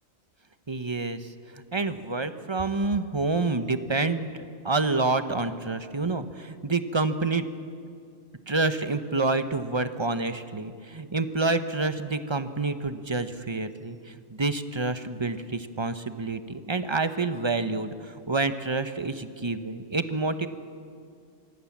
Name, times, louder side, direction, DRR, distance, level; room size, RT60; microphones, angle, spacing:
voice 1, 0.7-1.3 1.5-4.3 4.6-7.5 8.5-20.5, right 3 dB, 25° right, 10 dB, 0.9 m, -28 dB
25.5 x 21.0 x 7.4 m, 2.2 s
omnidirectional pair, 1.3 m